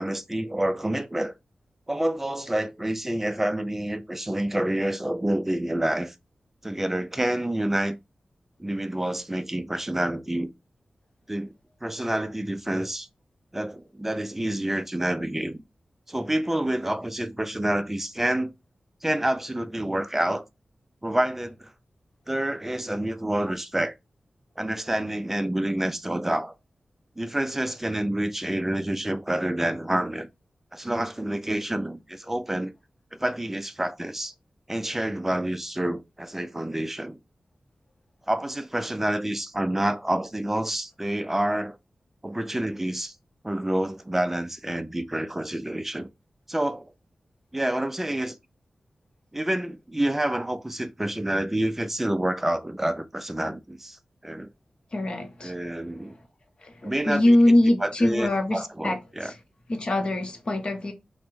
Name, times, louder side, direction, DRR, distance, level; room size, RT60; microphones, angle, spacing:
voice 1, 0.0-1.3 1.9-6.1 6.6-8.0 8.6-10.5 11.3-11.5 11.8-13.1 13.5-15.6 16.1-18.5 19.0-20.4 21.0-21.7 22.3-23.9 24.6-26.5 27.2-30.3 30.7-32.7 33.2-34.3 34.7-37.2 38.3-41.8 42.2-43.1 43.4-46.1 46.5-46.9 47.5-48.4 49.3-54.0 54.2-54.5 55.4-56.2 56.8-57.4 57.8-59.3, right 1 dB, 10° right, 0.3 m, -28 dB
voice 2, 54.9-55.7 56.0-56.2 56.6-59.4 59.7-60.9, left 1 dB, 45° left, 0.7 m, -23 dB
3.4 x 2.0 x 3.1 m
wide cardioid pair, 115°, 2 cm